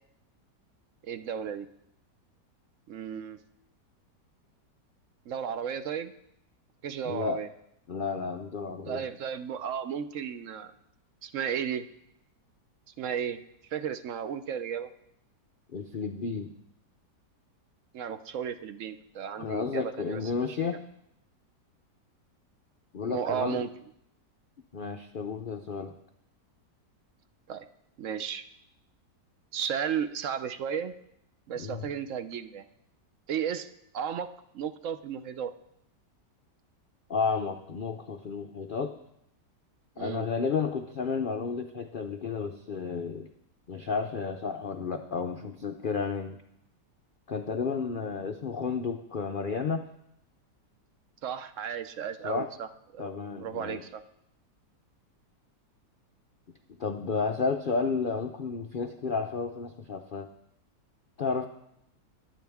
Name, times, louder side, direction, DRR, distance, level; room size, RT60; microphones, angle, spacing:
voice 1, 1.0-1.7 2.9-3.4 5.3-6.1 6.8-7.5 8.9-10.7 11.2-11.9 13.0-14.9 17.9-20.2 23.0-23.7 27.5-27.7 28.0-28.4 29.5-30.9 31.5-32.7 33.3-33.7 33.9-34.3 34.5-35.5 40.0-40.3 51.2-53.1 53.4-54.0, right 8 dB, 65° right, 11 dB, 0.8 m, -34 dB
voice 2, 7.0-7.4 7.9-9.0 15.7-16.5 19.4-20.8 22.9-23.6 24.7-25.9 31.6-31.9 37.1-39.0 40.0-43.3 43.7-46.4 47.3-49.9 52.2-52.5 53.0-53.8 56.8-60.3 61.2-61.5, left 5 dB, 80° left, 6 dB, 0.4 m, -32 dB
21.5 x 9.4 x 3.5 m, 0.77 s
omnidirectional pair, 1.8 m